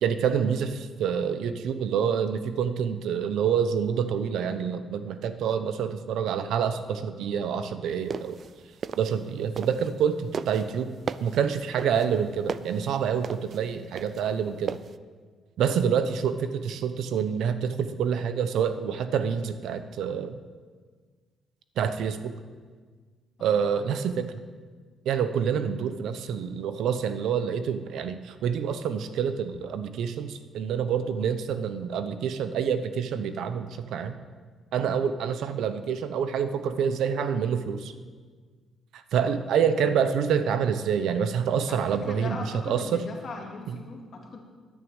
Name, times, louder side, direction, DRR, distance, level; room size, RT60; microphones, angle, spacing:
voice 1, 0.0-8.4 9.0-14.8 15.6-20.4 21.8-22.3 23.4-24.4 25.1-34.2 34.7-37.9 38.9-43.1 43.7-43.8, right 7 dB, 75° right, 10 dB, 0.8 m, -27 dB
sound 1, 7.9-10.0 10.3-14.9, right 6 dB, 35° right, 0.3 m, -35 dB
voice 2, 41.7-44.4, left 3 dB, 40° left, 1 dB, 2.1 m, -39 dB
10.5 x 9.3 x 9.0 m, 1.5 s
cardioid pair, 180°, 0 cm